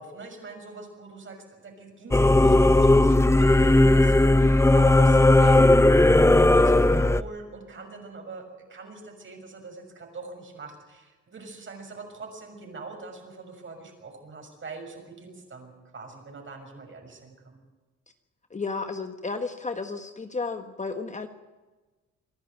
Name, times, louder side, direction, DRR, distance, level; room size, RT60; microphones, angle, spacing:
voice 1, 0.0-6.0 6.3-8.4 8.7-17.6, right 3 dB, 40° right, 4 dB, 6.3 m, -43 dB
Singing / Musical instrument, 2.1-7.2, left 2 dB, 10° left, 0.7 m, -17 dB
voice 2, 18.5-21.3, left 4 dB, 25° left, 7 dB, 1.5 m, -32 dB
25.5 x 11.0 x 9.1 m, 1.2 s
cardioid pair, 90°, 30 cm